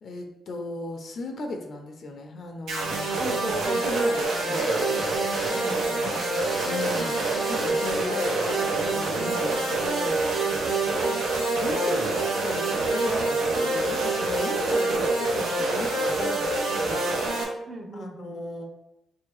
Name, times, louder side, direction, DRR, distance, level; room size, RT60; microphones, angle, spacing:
voice 1, 0.0-3.2 3.7-4.8 6.6-7.2 7.5-10.2 11.6-12.0 12.4-17.0 17.9-18.7, left 2 dB, 55° left, 3 dB, 0.6 m, -36 dB
sound 1, 2.7-17.4, right 2 dB, 90° right, 0.9 m, -26 dB
voice 2, 3.2-3.9 5.4-6.1 10.9-11.2 14.8-15.1 17.7-18.4, right 1 dB, 35° right, 2 dB, 0.6 m, -36 dB
sound 2, 4.3-10.3 11.5-11.9 12.1-12.2, left 1 dB, 15° left, 0.6 m, -41 dB
3.3 x 2.8 x 4.6 m, 0.89 s
cardioid pair, 115°, 0 cm